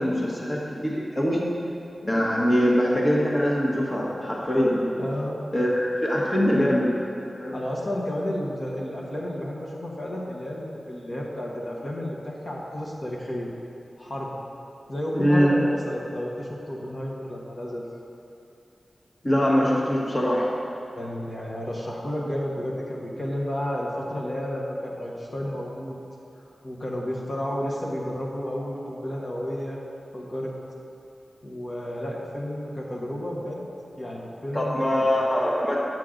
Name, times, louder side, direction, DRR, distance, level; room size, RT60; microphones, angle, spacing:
voice 1, 0.0-1.5 2.0-5.0 5.5-6.9 7.4-7.5 15.1-15.5 19.2-20.5 34.5-35.8, equal, 25° left, -4 dB, 1.3 m, -23 dB
voice 2, 5.0-5.4 7.5-13.5 14.0-14.4 14.9-17.8 20.9-26.0 26.6-29.8 30.1-30.5 31.4-33.6 33.9-35.1, left 1 dB, 45° left, -5 dB, 1.3 m, -31 dB
9.5 x 7.6 x 3.8 m, 2.8 s
wide cardioid pair, 85°, 0 cm